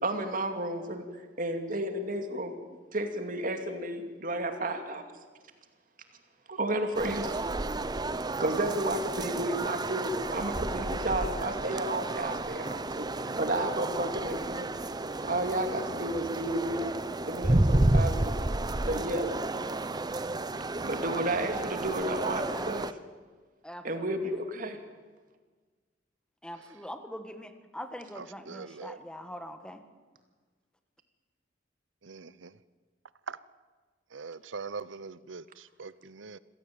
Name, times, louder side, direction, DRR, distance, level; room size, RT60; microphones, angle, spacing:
voice 1, 0.0-2.6 2.9-5.1 6.5-7.3 8.4-13.1 13.4-14.8 15.2-16.9 17.3-19.4 20.8-22.9 23.8-24.8, right 1 dB, 45° right, 6 dB, 2.6 m, -32 dB
sound 1, 6.9-22.9, right 2 dB, 20° right, 0.7 m, -31 dB
voice 2, 23.6-24.3 26.4-29.8, equal, 5° left, 8 dB, 1.6 m, -43 dB
voice 3, 28.2-29.0 32.0-32.5 33.3-33.4 34.1-36.4, right 5 dB, 90° right, 17 dB, 0.8 m, -42 dB
26.0 x 16.5 x 8.9 m, 1.4 s
head